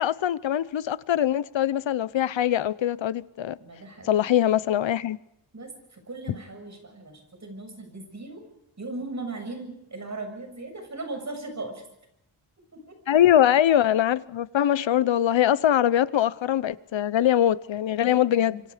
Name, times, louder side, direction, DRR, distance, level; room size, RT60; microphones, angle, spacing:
voice 1, 0.0-3.6 4.1-5.2 13.1-18.6, left 11 dB, 75° left, 0.9 m, -22 dB
voice 2, 3.6-4.2 5.5-8.4 8.8-11.8 12.7-12.9 18.1-18.6, right 2 dB, 35° right, 7.1 m, -38 dB
27.0 x 25.0 x 5.1 m
wide cardioid pair, 115°, 46 cm